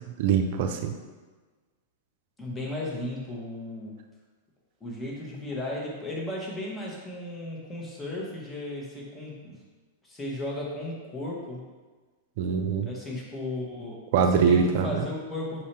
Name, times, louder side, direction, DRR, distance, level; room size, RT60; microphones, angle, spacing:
voice 1, 0.2-0.9 12.4-12.9 14.1-15.0, right 6 dB, 60° right, 5 dB, 0.4 m, -23 dB
voice 2, 2.4-3.9 4.8-9.6 10.0-11.6 12.9-14.0 14.3-15.6, left 1 dB, 15° left, -3 dB, 1.2 m, -35 dB
5.5 x 2.7 x 3.3 m, 1.3 s
hypercardioid pair, 100°, 0 cm